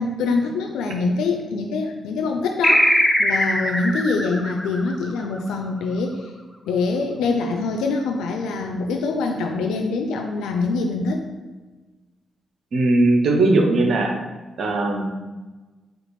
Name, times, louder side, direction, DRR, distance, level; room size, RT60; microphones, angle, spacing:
voice 1, 0.0-6.2 6.7-11.2, left 3 dB, 75° left, 3 dB, 0.3 m, -24 dB
sound 1, 2.6-5.6, equal, ahead, 0.5 m, -21 dB
voice 2, 12.7-14.1 14.6-15.1, right 2 dB, 60° right, 2 dB, 0.7 m, -18 dB
5.1 x 2.4 x 3.1 m, 1.2 s
hypercardioid pair, 40°, 0 cm